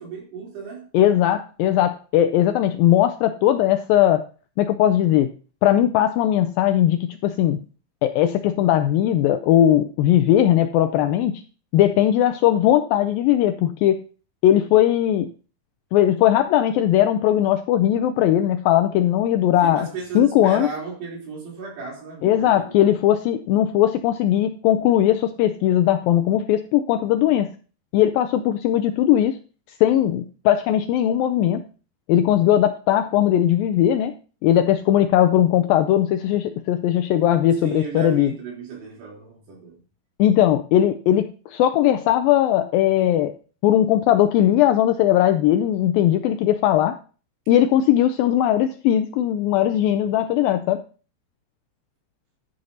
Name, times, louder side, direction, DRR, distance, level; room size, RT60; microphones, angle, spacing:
voice 1, 0.0-0.9 19.6-23.1 37.6-39.8, right 5 dB, 85° right, 5.6 m, -35 dB
voice 2, 0.9-4.2 4.6-5.3 5.6-7.6 8.0-11.4 11.7-14.0 14.4-15.3 15.9-19.9 20.2-20.7 22.2-27.5 27.9-29.4 29.8-31.6 32.1-34.1 34.4-38.3 40.2-43.3 43.6-47.0 47.5-50.8, left 11 dB, 85° left, 2.0 m, -19 dB
11.5 x 9.6 x 2.8 m
omnidirectional pair, 4.7 m